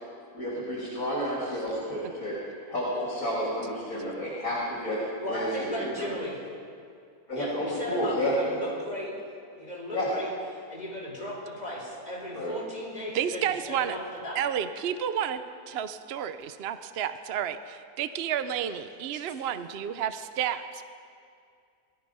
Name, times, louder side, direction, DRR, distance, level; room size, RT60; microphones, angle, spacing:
voice 1, 0.3-2.3 2.7-2.9 3.1-5.0 5.3-6.1 7.3-8.3 9.9-10.1 12.3-12.5, left 1 dB, 60° left, -5 dB, 3.6 m, -31 dB
voice 2, 5.2-6.4 7.3-9.2 9.6-10.3 10.5-14.4, equal, 25° left, -4 dB, 4.6 m, -36 dB
voice 3, 13.1-14.0 14.3-20.8, right 9 dB, 55° right, 11 dB, 0.7 m, -31 dB
19.5 x 13.5 x 5.5 m, 2.3 s
omnidirectional pair, 1.7 m